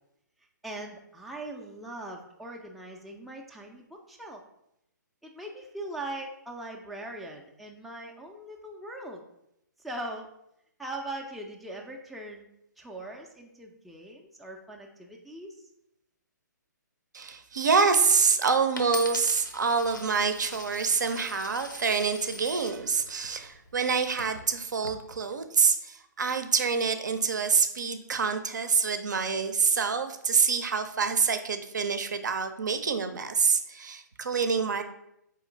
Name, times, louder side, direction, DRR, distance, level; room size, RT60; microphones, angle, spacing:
voice 1, 0.6-4.4 5.2-9.2 9.8-10.3 10.8-12.5 12.8-15.6, right 1 dB, ahead, -1 dB, 0.3 m, -40 dB
voice 2, 17.1-34.8, right 5 dB, 70° right, 9 dB, 0.5 m, -26 dB
Coin (dropping), 18.8-22.8 23.5-23.9, equal, 90° left, 0.7 m, -41 dB
4.2 x 2.9 x 3.7 m, 0.80 s
figure-of-eight pair, 130°, 10 cm